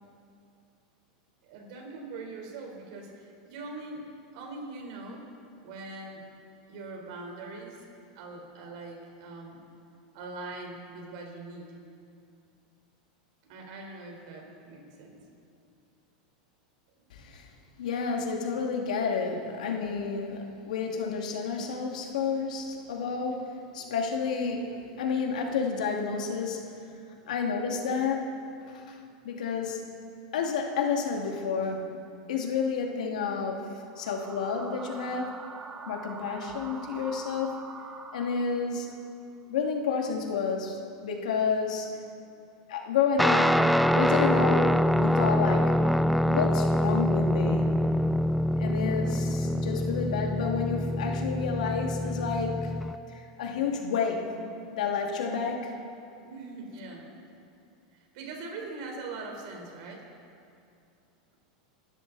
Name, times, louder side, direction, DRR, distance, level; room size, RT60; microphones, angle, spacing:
voice 1, 1.5-4.1 4.3-5.3 5.6-6.2 6.7-7.8 8.1-9.6 10.1-11.7 13.5-15.2 56.2-57.1 57.9-60.1, right 3 dB, 65° right, 1 dB, 4.0 m, -42 dB
voice 2, 17.1-17.5 17.8-26.7 27.2-28.4 28.7-29.0 29.2-29.8 30.3-32.0 32.3-35.4 35.9-37.6 38.1-38.9 39.5-42.0 42.7-43.7 43.9-45.8 46.2-47.9 48.6-52.7 53.1-54.3 54.7-55.7, left 5 dB, 90° left, 1 dB, 2.3 m, -30 dB
sound 1, 33.9-39.0, right 5 dB, 20° right, 0.9 m, -44 dB
Guitar, 43.2-52.9, equal, ahead, 0.4 m, -25 dB
25.0 x 12.5 x 4.1 m, 2.5 s
supercardioid pair, 140°, 4 cm